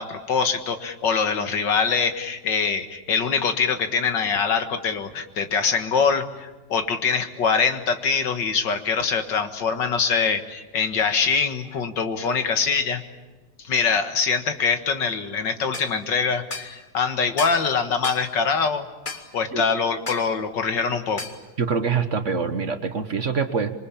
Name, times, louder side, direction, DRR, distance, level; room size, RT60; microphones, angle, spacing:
voice 1, 0.0-13.0 13.6-18.9 19.1-21.2, left 5 dB, 80° left, 7 dB, 2.3 m, -24 dB
sound 1, 15.7-15.9 16.5-16.7 17.4-17.6 18.0-18.3 19.1-19.3 20.1-20.3 21.2-21.4, left 3 dB, 25° left, 2.1 m, -33 dB
voice 2, 21.6-23.8, right 5 dB, 45° right, 9 dB, 1.5 m, -25 dB
26.5 x 23.5 x 8.6 m, 1.1 s
omnidirectional pair, 1.9 m